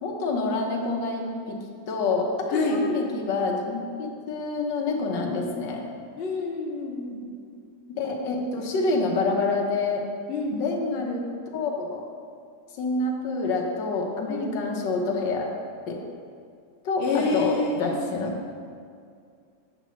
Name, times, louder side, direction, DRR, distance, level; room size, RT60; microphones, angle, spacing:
voice 1, 0.0-1.6 1.9-5.8 7.9-10.0 10.5-11.2 11.5-12.0 12.8-15.5 15.9-16.0 16.8-18.3, left 3 dB, 90° left, 0 dB, 1.5 m, -27 dB
voice 2, 6.2-7.2 10.3-10.6 14.3-14.5 17.0-18.0, left 3 dB, 45° left, -2 dB, 0.8 m, -28 dB
7.6 x 3.0 x 5.6 m, 2.3 s
omnidirectional pair, 1.9 m